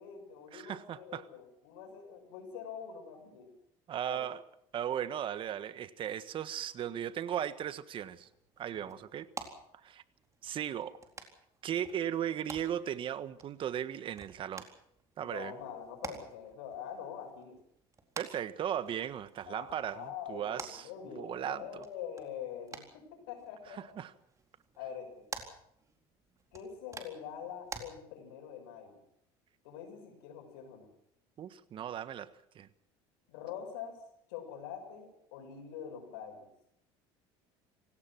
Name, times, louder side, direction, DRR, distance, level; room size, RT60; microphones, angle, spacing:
voice 1, 0.0-3.5 4.1-4.3 8.7-9.0 15.2-17.6 19.5-24.0 24.8-25.3 26.5-29.0 29.6-30.9 33.3-34.0 34.3-36.5, left 8 dB, 85° left, 6 dB, 6.9 m, -45 dB
voice 2, 0.5-1.2 3.9-4.4 4.7-8.3 8.6-9.3 9.8-10.0 10.4-11.0 11.6-14.7 15.2-15.5 18.2-21.8 23.7-24.1 31.4-32.3 32.5-32.7, right 10 dB, 45° right, 13 dB, 1.5 m, -37 dB
sound 1, 8.0-27.8, right 4 dB, 25° right, 4.1 m, -50 dB
26.5 x 17.5 x 6.2 m, 0.74 s
supercardioid pair, 100°, 12 cm